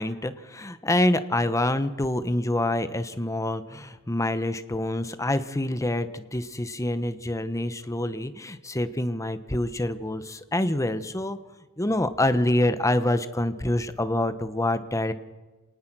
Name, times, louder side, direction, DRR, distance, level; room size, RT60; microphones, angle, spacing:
voice 1, 0.0-11.4 11.8-15.1, left 1 dB, 15° left, 11 dB, 1.0 m, -26 dB
27.5 x 19.0 x 6.2 m, 1.2 s
head